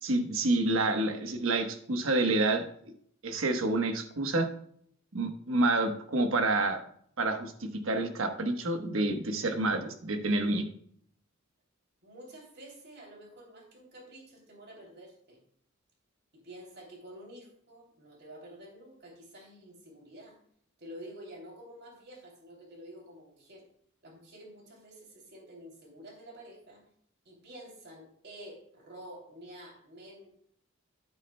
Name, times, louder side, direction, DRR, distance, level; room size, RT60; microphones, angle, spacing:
voice 1, 0.0-2.6 3.2-4.5 5.1-6.8 7.2-10.7, right 2 dB, 70° right, 6 dB, 1.1 m, -28 dB
voice 2, 12.0-15.4 16.3-20.4 20.8-23.7 24.0-26.8 27.2-30.5, right 1 dB, 50° right, 0 dB, 2.9 m, -49 dB
11.0 x 8.4 x 2.2 m, 0.64 s
head